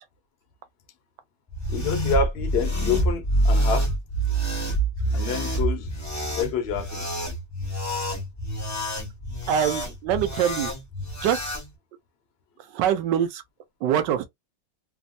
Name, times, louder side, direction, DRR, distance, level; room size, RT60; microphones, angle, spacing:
sound 1, 1.5-11.6, right 1 dB, 25° left, 0.4 m, -27 dB
voice 1, 1.7-3.9 5.1-5.9 6.4-7.1, left 5 dB, 55° left, 0.7 m, -27 dB
voice 2, 9.5-10.7 11.2-11.4 12.7-13.4 13.8-14.2, right 10 dB, 80° right, 1.3 m, -23 dB
3.3 x 2.0 x 2.5 m
omnidirectional pair, 1.9 m